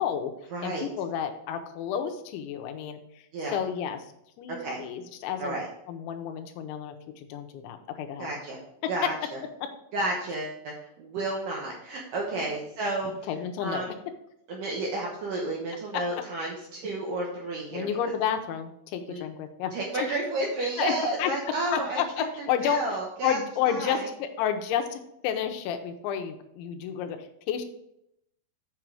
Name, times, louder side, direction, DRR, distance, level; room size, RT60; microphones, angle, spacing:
voice 1, 0.0-0.3 0.6-3.2 3.5-4.1 4.4-8.3 8.8-9.1 9.6-9.7 12.4-12.5 13.0-13.9 15.9-16.0 17.7-20.2 20.6-20.9 21.2-21.3 21.7-22.8 23.2-27.6, left 9 dB, 80° left, 6 dB, 3.0 m, -31 dB
voice 2, 0.5-0.9 3.3-3.6 4.5-4.8 5.4-5.7 8.2-8.6 8.9-9.1 9.9-13.1 13.6-13.9 14.5-17.9 19.1-19.2 19.7-22.0 22.6-23.4 23.7-24.1, right 2 dB, 90° right, -2 dB, 1.8 m, -31 dB
7.6 x 6.2 x 4.7 m, 0.79 s
omnidirectional pair, 5.6 m